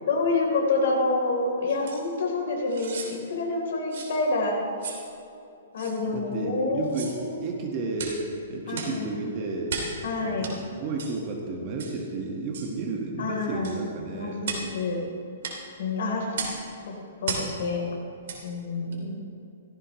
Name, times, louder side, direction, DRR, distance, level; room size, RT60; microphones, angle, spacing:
voice 1, 0.1-4.6 5.7-7.4 8.7-9.2 10.0-10.6 13.2-13.8 14.1-15.0 15.8-16.6 16.9-17.0 17.2-17.8 18.4-19.2, left 3 dB, 65° left, 0 dB, 3.6 m, -28 dB
sound 1, 1.9-2.0 2.7-3.1 3.9-4.1 4.8-5.0 5.8-6.0 6.8-7.2 8.0-8.2 8.7-9.0 9.7-10.0 10.4-10.5 11.0-11.2 11.8-12.0 12.5-12.7 13.6-13.8 14.4-14.7 15.4-15.6 16.3-16.6 17.2-17.5 18.2-18.4 18.9-19.0, right 5 dB, 65° right, 2.9 m, -34 dB
voice 2, 6.1-8.2 8.5-9.8 10.2-10.5 10.8-14.4, right 3 dB, 35° right, 0 dB, 1.6 m, -32 dB
16.5 x 15.0 x 3.2 m, 2.7 s
hypercardioid pair, 160°, 0 cm